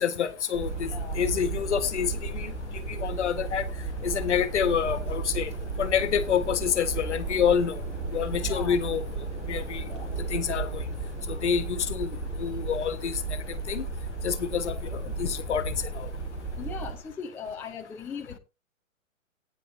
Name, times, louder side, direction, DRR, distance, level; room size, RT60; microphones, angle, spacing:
voice 1, 0.0-0.9 1.1-2.5 3.0-3.6 4.0-5.5 5.8-7.8 8.1-9.0 9.5-9.8 10.3-10.8 11.3-12.1 12.4-13.1 13.7-13.9 14.2-16.1, left 8 dB, 55° left, 12 dB, 1.5 m, -27 dB
sound 1, 0.5-17.0, right 3 dB, 15° right, 2.4 m, -34 dB
voice 2, 0.9-1.2 8.4-8.8 9.9-10.1 16.6-18.4, left 6 dB, 5° left, 3 dB, 0.6 m, -39 dB
17.0 x 9.7 x 2.7 m, 0.28 s
figure-of-eight pair, 125°, 41 cm